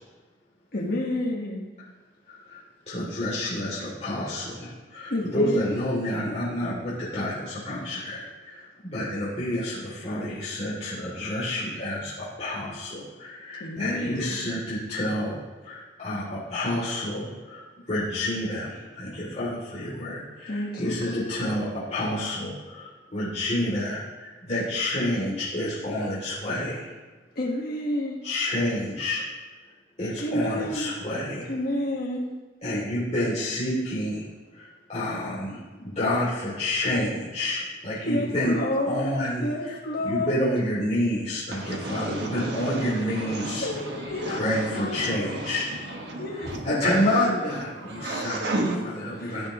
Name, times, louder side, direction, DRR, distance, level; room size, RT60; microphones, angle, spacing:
voice 1, 0.7-1.6 5.1-5.9 13.6-14.4 20.5-21.4 27.3-28.2 30.2-31.0 31.5-32.3 38.0-39.1 39.4-40.4 43.6-44.5 44.7-45.3 46.2-47.2 49.2-49.4, left 1 dB, 60° left, 1.5 m, -30 dB
voice 2, 2.3-2.6 2.9-17.6 17.9-26.9 28.2-29.2 30.0-31.5 32.6-38.5 38.9-39.7 40.0-43.7 44.3-45.6 46.6-48.5 49.2-49.5, left 1 dB, 40° left, 2.9 m, -29 dB
voice 3, 41.5-49.5, right 1 dB, 65° right, 1.6 m, -33 dB
15.5 x 9.5 x 3.1 m
head